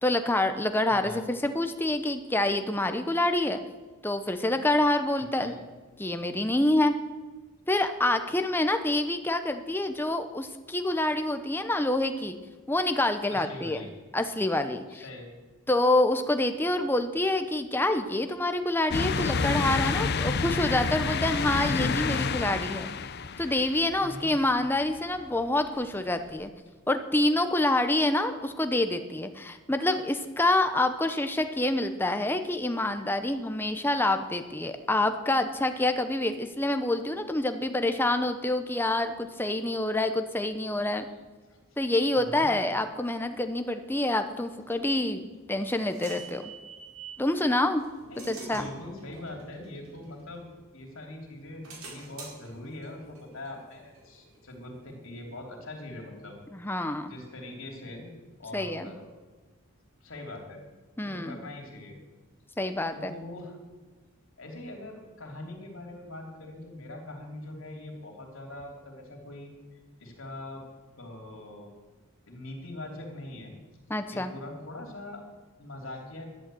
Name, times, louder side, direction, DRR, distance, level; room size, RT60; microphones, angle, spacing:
voice 1, 0.0-3.6 4.0-5.5 6.0-7.0 7.7-12.4 12.7-13.8 14.1-15.0 15.7-22.9 23.4-26.5 26.9-41.1 41.8-46.5 47.2-47.8 48.2-48.7 56.5-57.1 58.5-58.9 61.0-61.4 62.6-63.1 73.9-74.3, left 1 dB, 10° left, 8 dB, 0.7 m, -27 dB
voice 2, 0.9-1.2 5.4-5.6 13.3-13.9 14.9-15.3 24.0-24.3 26.7-26.8 41.4-41.6 42.1-42.5 48.1-50.5 50.7-56.4 57.1-58.1 58.4-59.1 60.0-60.6 61.0-62.0 62.9-63.6 64.4-69.5 70.0-70.7 71.0-71.7 72.3-73.5 74.1-75.3 75.6-76.2, left 1 dB, 65° left, 2 dB, 3.1 m, -42 dB
sound 1, 18.9-24.5 25.0-25.1 26.4-26.5, left 4 dB, 50° left, 0.6 m, -29 dB
sound 2, 45.0-47.2 47.8-50.9 51.3-54.7, right 4 dB, 80° right, 4.7 m, -47 dB
11.0 x 11.0 x 7.7 m, 1.3 s
head